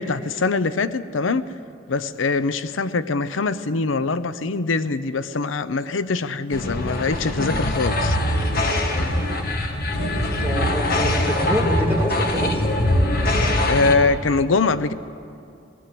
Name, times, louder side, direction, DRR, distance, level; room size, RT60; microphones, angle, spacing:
voice 1, 0.0-1.5 1.9-8.2 13.7-14.9, left 4 dB, 90° left, 14 dB, 0.7 m, -23 dB
sound 1, 6.5-13.9, left 1 dB, 50° left, 1.7 m, -22 dB
voice 2, 10.4-12.6, equal, 10° right, -2 dB, 2.6 m, -25 dB
20.0 x 18.0 x 7.7 m, 2.6 s
head